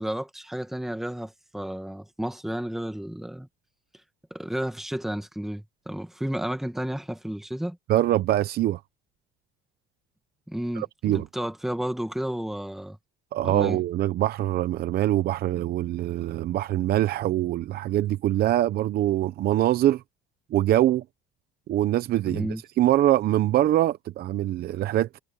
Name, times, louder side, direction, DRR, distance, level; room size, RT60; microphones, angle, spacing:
voice 1, 0.0-3.5 4.3-7.8 10.5-13.0 13.4-13.8 22.2-22.6, right 1 dB, ahead, 1.7 m, -32 dB
voice 2, 7.9-8.8 10.8-11.3 13.3-20.0 20.5-21.0 21.7-22.5 22.8-25.2, right 13 dB, 50° right, 0.7 m, -23 dB
cardioid pair, 150°, 21 cm